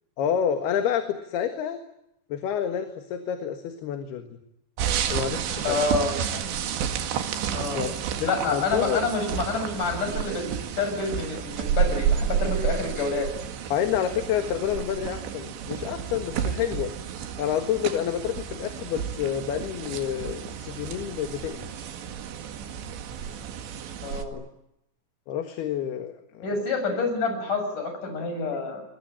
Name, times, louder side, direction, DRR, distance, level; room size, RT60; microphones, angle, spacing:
voice 1, 0.2-1.8 2.3-4.4 5.1-5.8 7.7-9.1 13.7-16.9 17.4-21.9 24.3-24.5 25.3-26.5, left 9 dB, 70° left, 7 dB, 3.6 m, -29 dB
sound 1, 4.8-24.3, right 8 dB, 85° right, 4.3 m, -31 dB
voice 2, 5.6-6.4 7.5-7.8 8.2-10.5 10.8-13.3 24.0-24.4 26.4-28.8, left 3 dB, 50° left, 6 dB, 8.5 m, -28 dB
28.0 x 22.0 x 8.9 m, 0.82 s
omnidirectional pair, 4.9 m